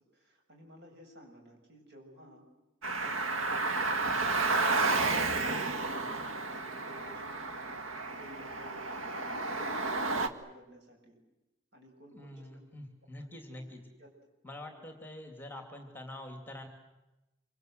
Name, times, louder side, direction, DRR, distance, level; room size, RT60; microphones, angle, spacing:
voice 1, 0.1-2.4 3.0-5.0 5.3-11.2 11.7-12.7 13.2-13.6 14.0-14.1 14.6-14.8, equal, 55° right, 2 dB, 7.2 m, -54 dB
Car, 2.8-10.3, right 3 dB, 80° right, 1.7 m, -31 dB
voice 2, 12.1-13.8 14.4-16.7, left 1 dB, 10° left, 5 dB, 2.6 m, -45 dB
26.5 x 25.5 x 8.0 m, 0.99 s
head